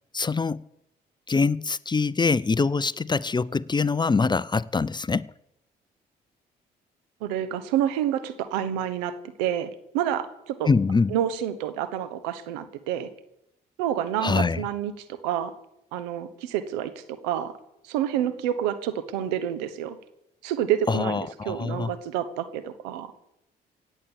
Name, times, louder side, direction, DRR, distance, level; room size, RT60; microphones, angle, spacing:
voice 1, 0.1-0.6 1.3-5.3 10.7-11.1 14.2-14.6 20.9-22.0, left 4 dB, 20° left, 0.5 m, -24 dB
voice 2, 7.2-9.1 9.4-10.7 11.1-13.1 13.8-15.5 15.9-17.5 17.8-20.0 20.4-21.2 21.4-23.1, right 10 dB, 85° right, 1.1 m, -28 dB
16.5 x 8.9 x 7.1 m
hypercardioid pair, 50°, 21 cm